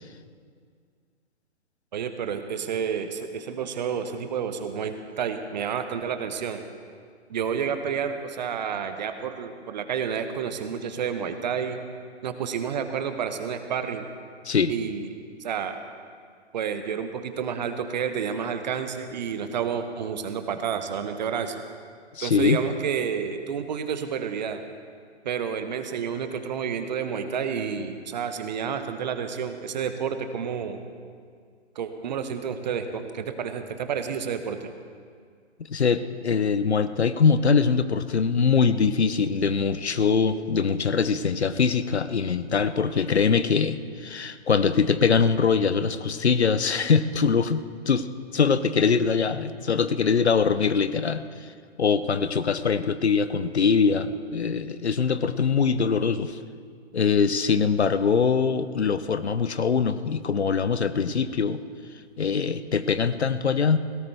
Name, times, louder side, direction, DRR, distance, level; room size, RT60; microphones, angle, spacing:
voice 1, 1.9-6.6 7.3-11.8 12.2-14.1 14.7-15.1 15.4-15.8 16.5-21.6 22.2-24.6 25.2-30.8 31.7-34.7, right 7 dB, 40° right, 8 dB, 1.0 m, -30 dB
voice 2, 22.1-22.6 35.7-48.1 48.3-51.3 51.8-56.4 56.9-61.6 62.2-63.8, left 5 dB, 70° left, 13 dB, 0.8 m, -23 dB
17.0 x 17.0 x 3.4 m, 2.1 s
figure-of-eight pair, 125°, 34 cm